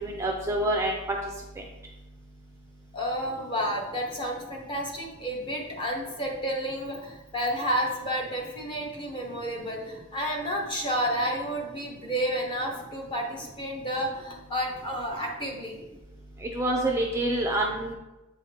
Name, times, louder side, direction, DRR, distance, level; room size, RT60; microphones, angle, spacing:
voice 1, 0.0-1.0 16.5-17.9, right 1 dB, 10° right, 0 dB, 0.5 m, -26 dB
voice 2, 2.9-15.8, equal, 20° left, 0 dB, 0.9 m, -31 dB
7.5 x 4.9 x 2.9 m, 1.0 s
head